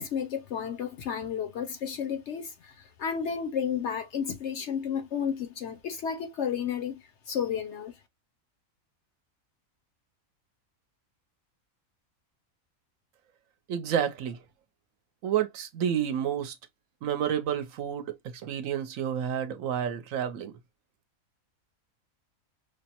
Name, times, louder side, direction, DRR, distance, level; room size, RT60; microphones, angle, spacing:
voice 1, 0.0-8.0, left 7 dB, 65° left, 0.8 m, -32 dB
voice 2, 13.7-14.4 15.2-16.6 17.0-20.6, right 9 dB, 70° right, 1.0 m, -30 dB
5.0 x 2.0 x 2.8 m
omnidirectional pair, 1.5 m